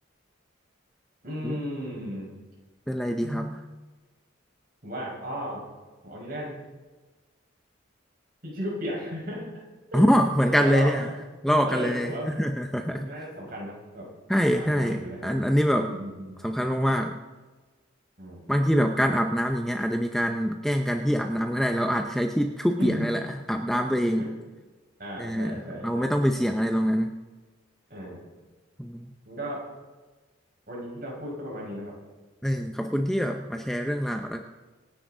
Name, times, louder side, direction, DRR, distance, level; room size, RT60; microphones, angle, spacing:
voice 1, 1.2-2.3 3.2-3.6 4.8-5.6 6.0-6.6 8.4-9.4 9.9-10.1 10.5-11.1 11.6-12.5 12.9-14.1 14.5-15.3 15.8-16.4 18.2-18.5 22.8-23.1 24.2-24.3 25.0-26.1 27.9-28.3 29.2-29.6 30.7-32.0, equal, 45° right, -2 dB, 5.1 m, -35 dB
voice 2, 2.9-3.6 9.9-11.1 11.4-13.2 14.3-15.9 16.4-17.2 18.5-24.3 25.2-27.1 28.8-29.1 32.4-34.4, equal, ahead, 4 dB, 0.6 m, -25 dB
26.0 x 9.9 x 3.8 m, 1.3 s
head